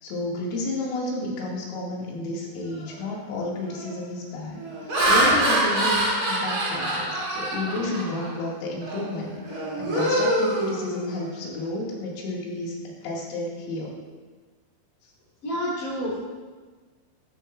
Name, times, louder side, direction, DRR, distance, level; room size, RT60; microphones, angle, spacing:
voice 1, 0.0-13.9 15.0-15.1, left 2 dB, 85° left, -3 dB, 4.5 m, -31 dB
Laughter, 2.8-3.1 3.6-3.9 4.6-8.4 8.8-9.1 9.4-11.4, right 1 dB, 30° right, 1.6 m, -25 dB
voice 2, 15.4-16.2, equal, 45° left, -6 dB, 4.0 m, -28 dB
13.5 x 11.5 x 2.3 m, 1.4 s
omnidirectional pair, 5.6 m